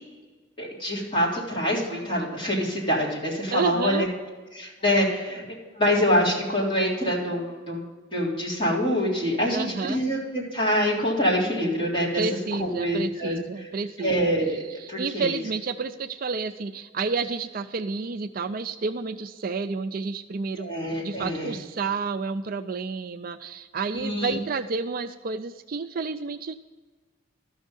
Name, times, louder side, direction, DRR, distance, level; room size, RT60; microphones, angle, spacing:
voice 1, 0.6-4.1 4.5-5.4 5.8-7.8 8.1-12.2 12.6-13.4 14.0-15.3 20.6-21.5 23.9-24.4, equal, 25° left, -5 dB, 3.5 m, -25 dB
voice 2, 3.5-4.1 9.5-10.0 12.2-14.3 14.8-20.7 21.0-26.5, right 4 dB, 50° right, 9 dB, 0.4 m, -30 dB
13.5 x 6.4 x 5.2 m, 1.3 s
head